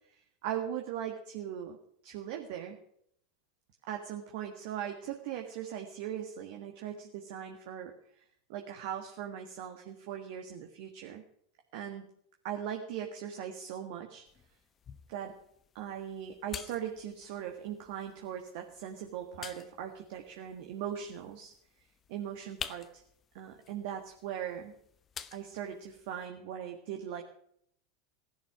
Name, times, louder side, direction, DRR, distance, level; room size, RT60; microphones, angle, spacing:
voice 1, 0.4-1.8 2.0-2.8 3.9-7.9 8.5-11.2 11.7-12.1 12.4-14.2 15.1-15.3 15.7-21.5 22.1-23.0 23.3-24.7 25.3-27.2, right 9 dB, 55° right, 4 dB, 1.5 m, -39 dB
sound 1, 14.3-26.3, left 7 dB, 30° left, 0.9 m, -50 dB
16.5 x 11.0 x 6.1 m, 0.69 s
figure-of-eight pair, 85°, 0 cm